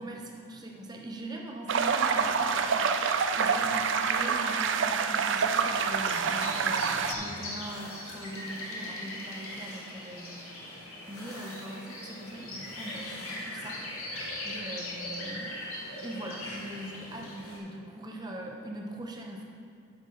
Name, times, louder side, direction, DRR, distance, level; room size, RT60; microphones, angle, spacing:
voice 1, 0.0-10.4 10.8-15.6 16.0-19.4, right 1 dB, 20° right, 0 dB, 0.8 m, -41 dB
sound 1, 1.7-7.1, right 5 dB, 55° right, 0.4 m, -27 dB
sound 2, 4.1-8.4, left 1 dB, 10° left, 2.2 m, -48 dB
sound 3, 5.8-17.6, left 1 dB, 80° left, 1.9 m, -40 dB
10.5 x 7.2 x 3.9 m, 2.3 s
head